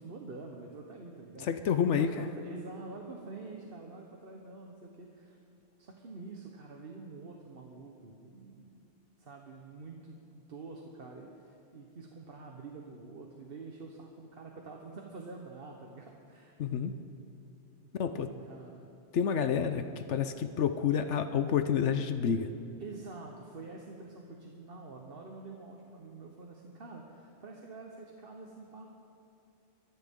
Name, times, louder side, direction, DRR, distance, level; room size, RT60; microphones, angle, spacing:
voice 1, 0.0-1.5 2.0-5.4 5.8-8.8 9.2-16.6 18.0-18.9 19.3-19.6 22.8-28.8, right 3 dB, 50° right, 1 dB, 1.3 m, -47 dB
voice 2, 1.4-2.3 16.6-16.9 18.0-18.3 19.1-22.5, left 7 dB, 75° left, 9 dB, 1.0 m, -29 dB
23.5 x 14.0 x 3.7 m, 2.8 s
omnidirectional pair, 1.2 m